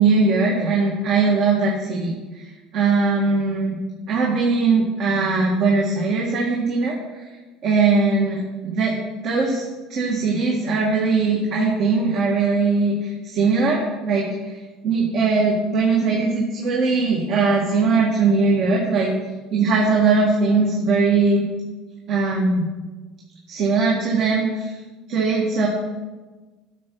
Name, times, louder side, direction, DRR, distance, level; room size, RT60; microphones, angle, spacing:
voice 1, 0.0-2.4 2.7-3.8 4.1-7.3 7.6-14.6 14.8-19.1 19.5-21.5 22.1-22.7 23.5-24.8 25.1-25.7, right 4 dB, 50° right, -2 dB, 1.8 m, -20 dB
12.0 x 6.8 x 4.7 m, 1.2 s
cardioid pair, 130°, 0 cm